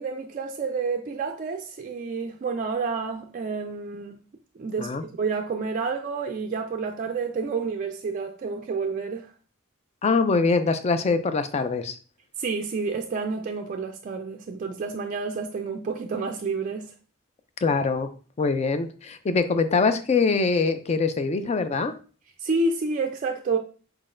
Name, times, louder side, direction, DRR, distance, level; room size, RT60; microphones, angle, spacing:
voice 1, 0.0-4.2 4.6-4.9 5.2-9.3 12.4-16.9 22.4-23.6, right 4 dB, 40° right, 0.3 m, -29 dB
voice 2, 10.0-12.0 17.6-18.1 18.4-21.9, left 4 dB, 30° left, 0.4 m, -23 dB
4.4 x 3.8 x 2.5 m
head